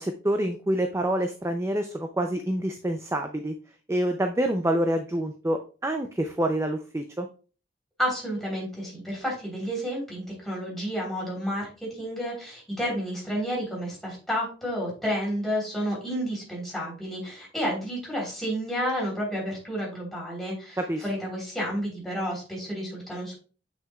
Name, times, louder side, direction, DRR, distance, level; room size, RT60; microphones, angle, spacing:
voice 1, 0.0-3.5 3.9-7.3 20.8-21.0, right 1 dB, 15° right, 5 dB, 0.4 m, -27 dB
voice 2, 8.0-23.4, equal, ahead, -4 dB, 3.5 m, -31 dB
7.7 x 6.0 x 2.3 m, 0.36 s
head